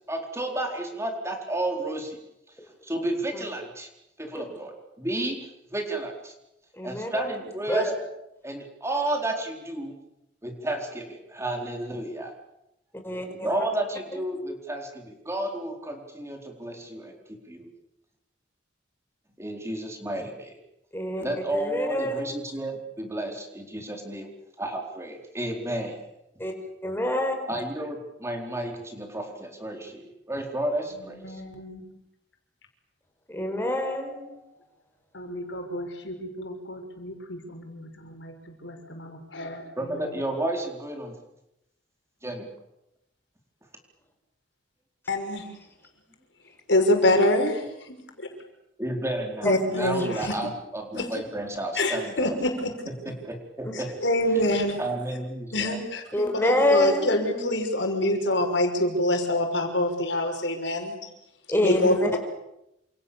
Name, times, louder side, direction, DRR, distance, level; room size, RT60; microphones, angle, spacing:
voice 1, 0.1-2.2 2.8-3.9 4.2-4.7 5.0-5.4 5.7-6.3 6.8-7.9 8.4-9.9 10.4-12.3 13.3-17.7 19.4-20.5 21.2-24.3 24.6-25.9 27.5-31.4 39.8-41.1 42.2-42.5 48.8-52.4 53.2-53.9 54.8-55.8 61.8-62.0, right 1 dB, 15° right, 3 dB, 4.3 m, -32 dB
voice 2, 6.8-7.4 7.7-7.9 13.0-13.5 20.9-21.2 21.5-22.3 26.4-26.5 26.8-27.4 33.3-34.3 49.4-50.2 53.6-53.7 56.1-57.1 61.5-62.2, left 1 dB, 10° left, 4 dB, 5.4 m, -26 dB
voice 3, 31.1-31.9 35.1-40.0 45.1-45.5 46.7-48.3 49.4-50.4 50.9-51.1 51.8-52.7 53.7-54.8 55.5-61.0 61.6-62.2, left 1 dB, 75° left, 4 dB, 5.9 m, -26 dB
28.5 x 28.0 x 7.2 m, 0.86 s
head